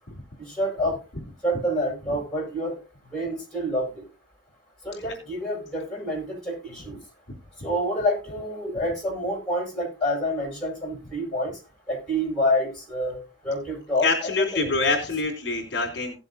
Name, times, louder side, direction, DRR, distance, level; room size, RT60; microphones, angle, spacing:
voice 1, 0.4-1.0 1.4-2.8 3.1-3.9 4.8-7.0 7.6-11.5 11.9-14.7, equal, 5° left, -5 dB, 7.4 m, -28 dB
voice 2, 14.0-16.2, left 3 dB, 65° left, 0 dB, 3.6 m, -25 dB
17.5 x 7.6 x 2.7 m, 0.31 s
head